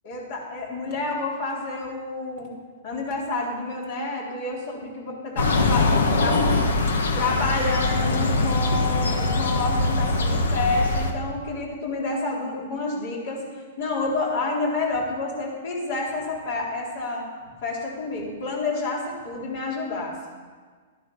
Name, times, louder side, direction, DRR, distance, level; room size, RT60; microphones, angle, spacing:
voice 1, 0.0-2.5 2.8-5.9 6.2-6.4 7.1-13.4 13.8-17.2 17.6-20.1, left 3 dB, 55° left, -2 dB, 3.9 m, -29 dB
sound 1, 5.4-11.1, left 2 dB, 80° left, 1.4 m, -22 dB
12.5 x 11.0 x 5.6 m, 1.5 s
hypercardioid pair, 125°, 0 cm